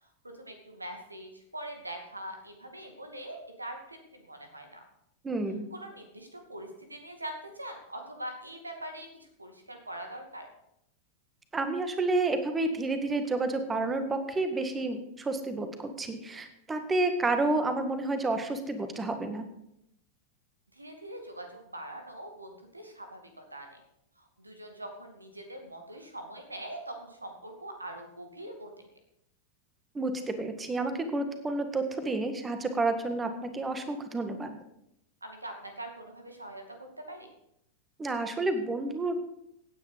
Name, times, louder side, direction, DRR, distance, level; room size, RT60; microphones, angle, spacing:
voice 1, 0.0-4.8 5.7-10.5 20.7-23.8 24.2-28.8 35.2-37.3, right 1 dB, 80° right, 5 dB, 2.5 m, -43 dB
voice 2, 5.2-5.7 11.5-19.5 29.9-34.6 38.0-39.2, right 2 dB, 15° right, 8 dB, 1.8 m, -30 dB
16.0 x 9.4 x 5.1 m, 0.79 s
figure-of-eight pair, 90°, 0 cm